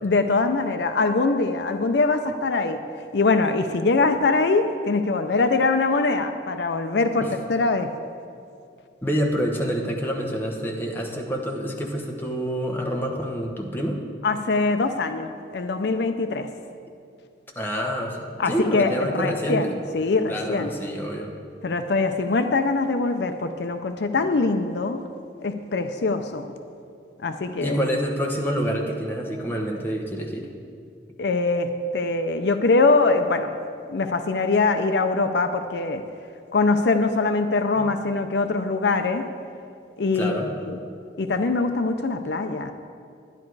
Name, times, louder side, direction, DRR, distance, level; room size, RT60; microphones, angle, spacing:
voice 1, 0.0-2.8 3.1-7.9 14.2-16.5 18.4-20.7 21.6-25.0 25.4-26.5 27.2-27.8 31.2-33.6 33.9-36.0 36.5-39.3 40.0-40.8 41.2-42.7, left 3 dB, 65° left, 8 dB, 0.5 m, -23 dB
voice 2, 9.0-14.0 17.5-19.8 20.3-21.3 24.2-24.3 27.6-30.5 37.8-37.9 40.1-40.5, equal, 10° left, 0 dB, 1.0 m, -27 dB
10.5 x 10.5 x 4.7 m, 2.4 s
head